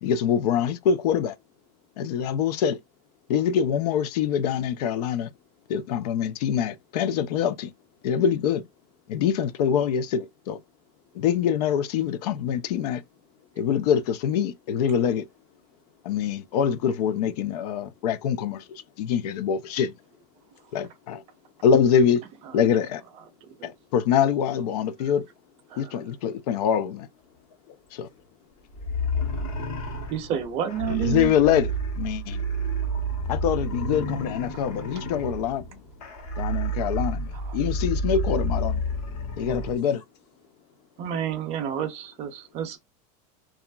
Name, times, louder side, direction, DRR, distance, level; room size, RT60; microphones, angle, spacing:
voice 1, 0.0-1.4 2.0-2.8 3.3-5.3 5.7-7.7 8.0-8.6 9.1-10.6 11.1-13.0 13.6-15.3 16.0-19.9 20.7-21.2 21.6-22.2 22.5-23.0 23.6-25.2 25.8-27.1 27.9-28.1 30.9-32.4 33.3-35.7 36.4-38.8 39.4-40.0, left 8 dB, 80° left, 0.4 m, -24 dB
voice 2, 20.4-20.8 27.4-28.5 29.6-29.7 30.0-30.1 32.1-32.3 32.7-32.9 33.2-33.3 36.0-36.3 40.4-40.5, left 7 dB, 45° left, 0.7 m, -59 dB
sound 1, 28.7-39.8, right 1 dB, 60° left, 1.0 m, -30 dB
voice 3, 30.1-31.3 37.5-37.6 41.0-42.8, right 9 dB, 30° right, 0.5 m, -29 dB
2.9 x 2.4 x 2.2 m
supercardioid pair, 165°, 20 cm